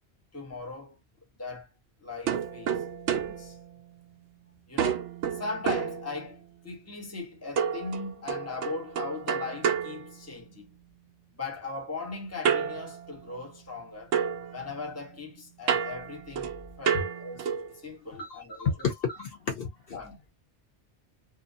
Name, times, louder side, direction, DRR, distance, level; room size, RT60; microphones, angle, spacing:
voice 1, 0.3-1.0 1.4-1.7 2.0-3.6 4.7-5.1 5.3-10.7 11.3-14.1 14.4-16.5 16.8-18.9 19.9-20.2, left 3 dB, 15° left, 0.8 m, -39 dB
sound 1, 2.3-4.4 4.8-6.6 7.6-10.8 12.4-13.8 14.1-17.8, right 7 dB, 90° right, 0.9 m, -31 dB
voice 2, 18.1-20.0, left 6 dB, 60° left, 0.8 m, -32 dB
2.6 x 2.3 x 2.5 m
omnidirectional pair, 1.2 m